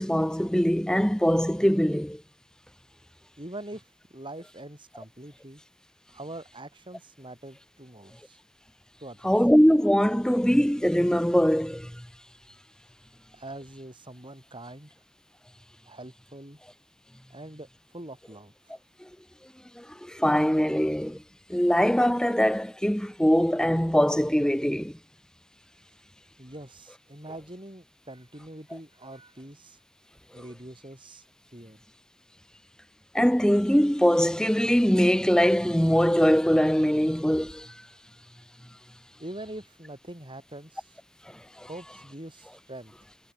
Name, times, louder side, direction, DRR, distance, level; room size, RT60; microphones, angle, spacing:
voice 1, 0.0-2.2 9.2-11.9 19.8-21.2 21.5-24.9 33.1-37.7, equal, 5° left, 1.3 m, -22 dB
voice 2, 3.4-5.6 6.1-8.4 9.0-9.3 13.3-14.9 15.9-16.6 17.3-17.7 17.9-18.5 26.4-29.8 30.3-31.2 31.5-31.8 39.2-41.0 41.7-42.9, right 1 dB, 25° right, 6.1 m, -43 dB
head